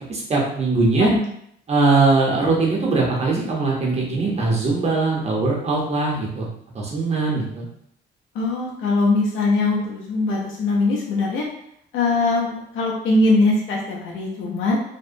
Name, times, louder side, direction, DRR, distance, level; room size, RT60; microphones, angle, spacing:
voice 1, 0.1-1.1 1.7-6.5 6.7-7.7, right 3 dB, 35° right, -3 dB, 0.7 m, -21 dB
voice 2, 0.9-1.3 8.3-11.5 11.9-14.8, left 2 dB, 80° left, -3 dB, 0.6 m, -21 dB
2.8 x 2.1 x 2.5 m, 0.71 s
cardioid pair, 135°, 19 cm